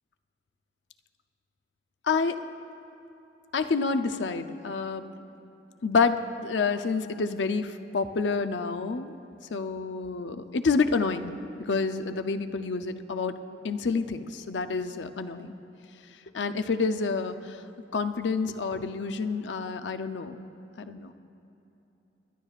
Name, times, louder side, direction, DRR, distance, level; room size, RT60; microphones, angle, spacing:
voice 1, 2.1-2.4 3.5-5.0 5.8-9.1 9.5-11.3 11.7-13.3 13.6-15.5 16.3-17.4 17.9-20.4 20.8-21.1, left 4 dB, 85° left, 9 dB, 0.6 m, -28 dB
23.0 x 11.5 x 2.4 m, 3.0 s
head